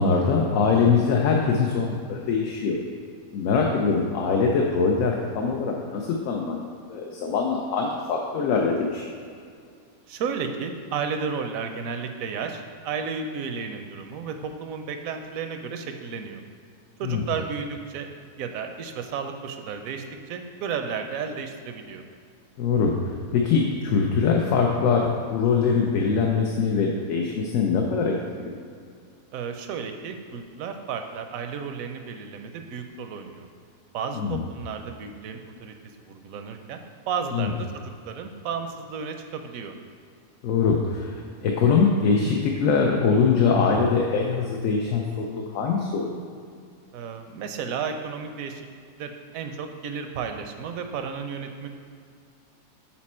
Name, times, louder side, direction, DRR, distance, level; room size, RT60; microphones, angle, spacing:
voice 1, 0.0-2.8 3.3-9.0 17.0-17.2 22.6-28.5 34.1-34.4 37.3-37.5 40.4-46.1, left 5 dB, 70° left, 0 dB, 1.0 m, -23 dB
voice 2, 10.1-16.4 17.0-18.1 18.4-22.0 29.3-33.5 33.9-35.7 36.1-39.7 46.9-48.6 49.0-51.7, right 6 dB, 75° right, 6 dB, 1.0 m, -33 dB
7.4 x 4.3 x 4.3 m, 2.2 s
omnidirectional pair, 1.5 m